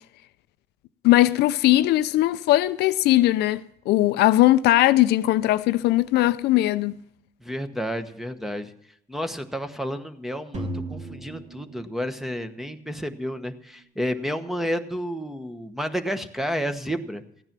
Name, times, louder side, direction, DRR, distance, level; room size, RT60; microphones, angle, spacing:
voice 1, 1.0-7.0, left 16 dB, 80° left, 0.5 m, -19 dB
voice 2, 7.4-8.7 9.1-17.2, equal, ahead, 1.1 m, -31 dB
sound 1, 10.5-12.7, right 1 dB, 40° right, 2.7 m, -36 dB
15.0 x 9.8 x 6.0 m
cardioid pair, 110°, 17 cm